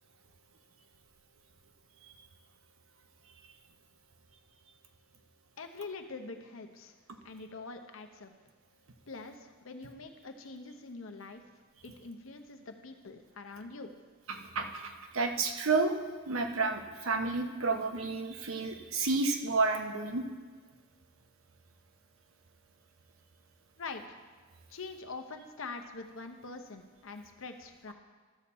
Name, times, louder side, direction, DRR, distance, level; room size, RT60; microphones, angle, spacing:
voice 1, 5.6-6.9 7.2-8.3 9.1-11.4 11.8-13.9 23.8-24.2 24.7-27.9, left 3 dB, 75° left, 6 dB, 0.8 m, -44 dB
voice 2, 14.3-15.9 16.3-20.2, right 3 dB, 85° right, 5 dB, 0.9 m, -31 dB
12.5 x 7.0 x 4.2 m, 1.5 s
head